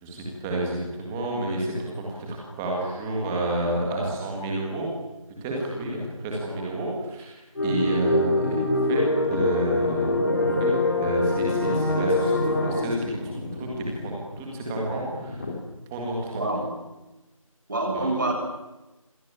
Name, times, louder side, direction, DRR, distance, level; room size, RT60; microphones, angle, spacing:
voice 1, 0.0-4.9 5.4-9.0 9.3-15.5 15.9-16.4 17.9-18.1, right 1 dB, 5° right, -2 dB, 2.0 m, -30 dB
sound 1, 7.5-12.9, left 2 dB, 40° left, 4.3 m, -24 dB
sound 2, 9.3-15.5, left 2 dB, 25° left, 3.6 m, -35 dB
voice 2, 16.3-16.7 17.7-18.3, right 2 dB, 35° right, 1 dB, 7.8 m, -26 dB
27.0 x 24.5 x 8.9 m, 1.0 s
figure-of-eight pair, 175°, 18 cm